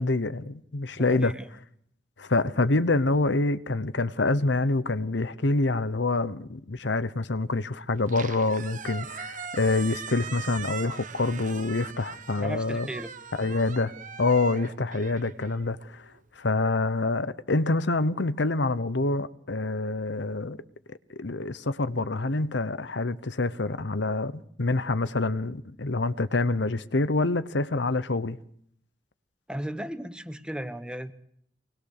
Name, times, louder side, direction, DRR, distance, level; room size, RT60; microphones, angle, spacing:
voice 1, 0.0-1.3 2.2-12.9 13.4-13.9 14.2-16.0 16.4-20.6 21.2-28.4, left 2 dB, 70° left, 1.0 m, -26 dB
voice 2, 0.9-1.5 12.4-13.1 29.5-31.1, equal, 5° right, 1.1 m, -36 dB
Squeak, 7.9-16.2, right 6 dB, 45° right, 1.2 m, -41 dB
24.5 x 20.0 x 6.7 m
head